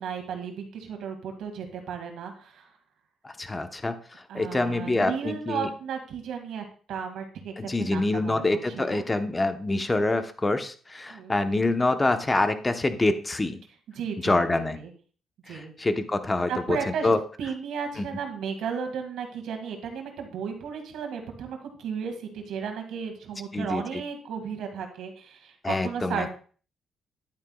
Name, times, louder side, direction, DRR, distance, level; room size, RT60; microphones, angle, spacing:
voice 1, 0.0-2.7 4.3-9.0 11.1-11.6 13.9-14.9 15.5-15.7 16.5-17.1 17.4-26.3, right 6 dB, 80° right, 4 dB, 2.0 m, -34 dB
voice 2, 3.2-5.7 7.6-13.6 14.2-14.8 15.5-17.2 18.0-18.1 23.5-24.0 25.6-26.3, left 2 dB, 20° left, 9 dB, 0.9 m, -26 dB
10.5 x 9.1 x 2.3 m, 0.41 s
cardioid pair, 90°, 0 cm